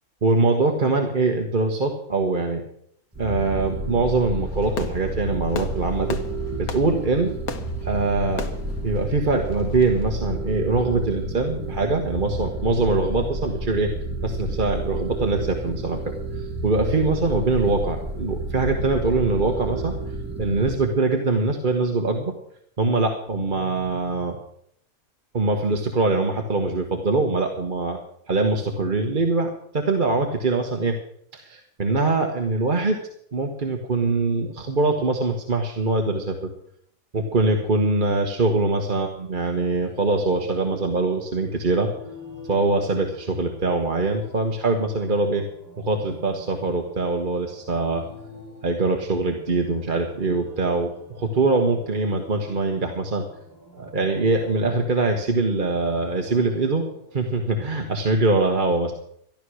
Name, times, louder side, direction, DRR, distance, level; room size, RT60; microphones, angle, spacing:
voice 1, 0.2-2.6 3.2-6.2 6.6-7.3 7.8-8.5 8.8-13.9 14.2-19.9 20.4-22.3 22.8-24.4 25.3-28.0 28.3-31.0 31.3-33.0 33.3-36.5 37.1-41.9 42.5-45.4 45.8-48.0 48.6-53.2 53.8-56.8 57.1-58.9, right 3 dB, 35° right, 3 dB, 1.3 m, -23 dB
sound 1, 3.1-20.9, right 2 dB, 10° right, 1.2 m, -30 dB
Fireworks, 4.4-10.1, left 6 dB, 80° left, 1.6 m, -37 dB
sound 2, 38.9-57.6, left 2 dB, 15° left, 4.4 m, -46 dB
14.0 x 11.5 x 6.3 m, 0.69 s
omnidirectional pair, 1.5 m